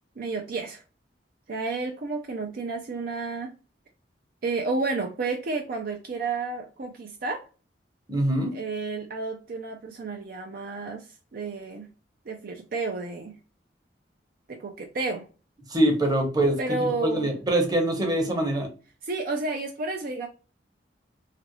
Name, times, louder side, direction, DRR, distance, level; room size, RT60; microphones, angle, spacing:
voice 1, 0.2-0.8 1.5-3.5 4.4-7.5 8.5-11.9 12.3-13.3 14.5-15.3 16.6-17.3 19.0-20.3, right 3 dB, 55° right, 2 dB, 0.5 m, -31 dB
voice 2, 8.1-8.5 15.7-16.6 17.0-18.7, right 1 dB, 25° right, 2 dB, 0.8 m, -23 dB
3.0 x 2.5 x 2.9 m, 0.34 s
head